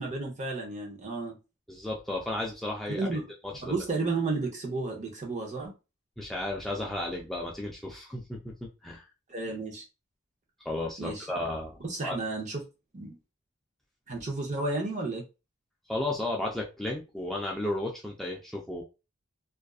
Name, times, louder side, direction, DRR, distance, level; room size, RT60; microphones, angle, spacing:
voice 1, 0.0-1.3 2.9-3.2 3.6-5.7 9.3-9.8 11.0-11.3 11.8-12.6 12.9-13.2 14.1-15.2, right 3 dB, 35° right, 1 dB, 0.7 m, -32 dB
voice 2, 1.7-3.2 3.5-3.7 6.2-9.0 10.6-12.2 15.9-18.8, left 1 dB, ahead, -2 dB, 0.3 m, -34 dB
2.5 x 2.3 x 2.3 m, 0.29 s
head